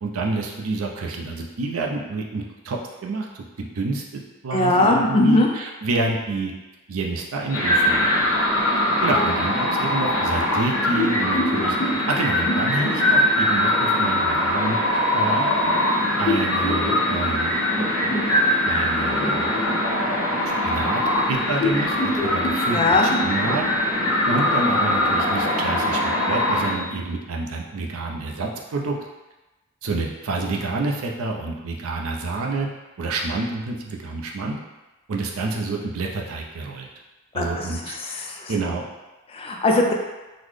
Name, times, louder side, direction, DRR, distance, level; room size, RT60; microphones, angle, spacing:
voice 1, 0.0-6.5 6.9-8.1 9.0-14.8 15.1-15.7 16.2-17.5 18.0-18.1 18.6-19.8 20.6-21.0 21.3-23.6 24.3-29.0 29.8-32.7 33.0-34.6 35.1-36.9 37.3-38.0 38.5-38.9, right 3 dB, 70° right, 0 dB, 0.5 m, -28 dB
voice 2, 4.5-5.5 9.2-9.3 22.7-23.1 37.3-38.5 39.3-39.9, left 2 dB, 25° left, 0 dB, 0.4 m, -20 dB
sound 1, 7.5-26.7, left 1 dB, 70° left, 1.3 m, -22 dB
3.9 x 2.1 x 3.2 m, 1.1 s
head